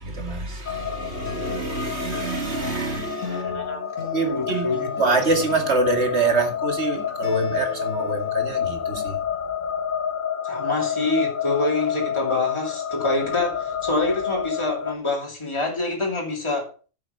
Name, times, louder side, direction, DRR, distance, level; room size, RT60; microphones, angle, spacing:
voice 1, 0.0-3.6 4.1-4.7 5.0-9.2, right 3 dB, 60° right, 2.5 m, -25 dB
sound 1, 0.7-15.0, left 8 dB, 45° left, 0.8 m, -29 dB
Acoustic guitar, 1.2-9.2, left 2 dB, 75° left, 2.7 m, -40 dB
voice 2, 3.2-3.8 4.2-4.9 10.4-16.7, left 2 dB, 25° left, 2.8 m, -26 dB
10.5 x 8.0 x 5.6 m
omnidirectional pair, 1.3 m